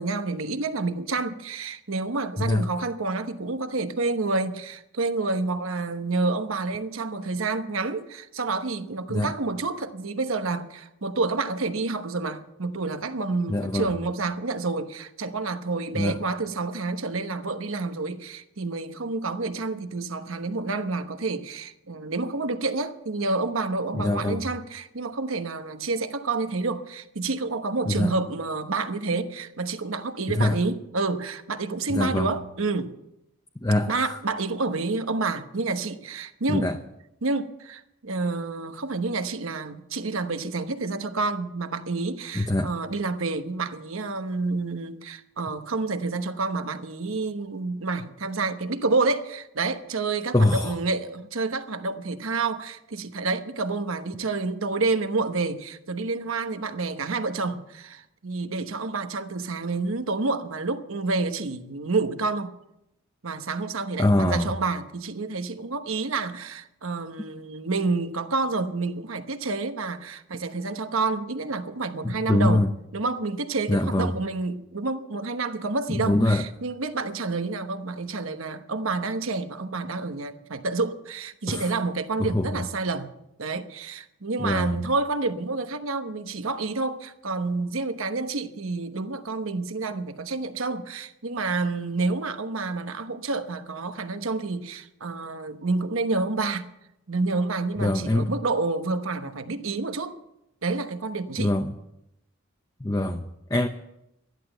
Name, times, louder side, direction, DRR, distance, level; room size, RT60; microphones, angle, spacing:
voice 1, 0.0-32.9 33.9-36.7 37.2-62.6 63.2-72.6 72.9-83.1 83.4-96.7 97.1-100.2 100.6-101.6, right 3 dB, 70° right, 1.0 m, -29 dB
voice 2, 13.5-13.9 15.9-16.2 23.9-24.5 27.8-28.1 30.3-30.6 31.9-32.3 33.6-34.2 36.5-36.8 42.3-42.7 50.3-50.8 64.0-64.5 72.0-72.7 73.7-74.2 75.9-76.4 81.5-81.7 82.2-82.6 84.4-84.8 97.8-98.3 101.4-101.7 102.8-103.7, left 1 dB, 15° left, 0.7 m, -24 dB
13.5 x 11.0 x 7.8 m
head